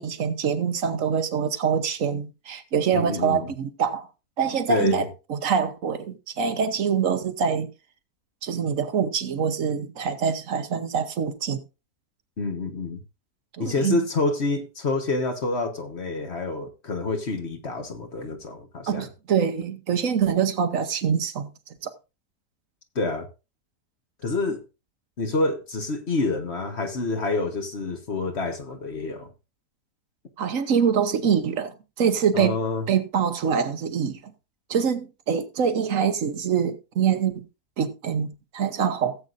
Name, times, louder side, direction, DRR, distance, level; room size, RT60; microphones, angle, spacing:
voice 1, 0.0-4.1 4.4-7.7 8.4-11.6 13.5-14.0 18.9-21.5 21.8-21.9 30.4-32.6 32.9-34.3 34.7-37.4 37.8-39.2, right 7 dB, 60° right, 1.3 m, -25 dB
voice 2, 2.9-3.5 4.7-5.1 12.4-13.0 13.6-19.1 22.9-23.3 24.2-24.6 25.2-29.3 32.3-32.8, left 3 dB, 45° left, 1.6 m, -27 dB
16.5 x 8.0 x 2.6 m
omnidirectional pair, 1.6 m